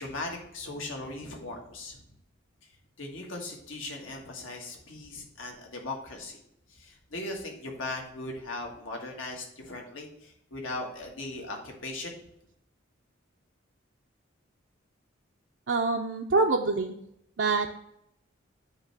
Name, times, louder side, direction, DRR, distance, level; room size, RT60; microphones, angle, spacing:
voice 1, 0.0-2.0 3.0-6.4 6.7-12.2, left 2 dB, 75° left, 1 dB, 1.7 m, -38 dB
voice 2, 15.7-16.9 17.4-17.8, right 3 dB, 65° right, 1 dB, 0.5 m, -25 dB
8.9 x 3.2 x 5.9 m, 0.78 s
head